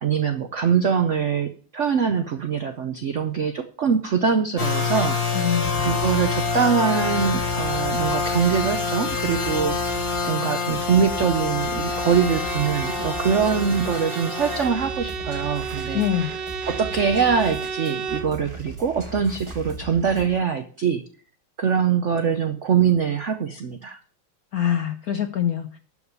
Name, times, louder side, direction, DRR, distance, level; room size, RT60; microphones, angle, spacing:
voice 1, 0.0-5.5 5.8-10.0 10.3-16.0 16.7-21.0 21.6-24.0, right 7 dB, 80° right, 8 dB, 0.6 m, -23 dB
sound 1, 4.6-14.6, left 4 dB, 25° left, 2.2 m, -26 dB
voice 2, 5.3-5.9 15.9-16.3 24.5-25.8, left 10 dB, 70° left, 8 dB, 0.8 m, -24 dB
sound 2, 5.6-20.4, right 2 dB, 15° right, 2.0 m, -38 dB
Bowed string instrument, 11.7-18.4, right 6 dB, 60° right, 1.5 m, -33 dB
12.0 x 4.9 x 6.7 m, 0.42 s
omnidirectional pair, 2.4 m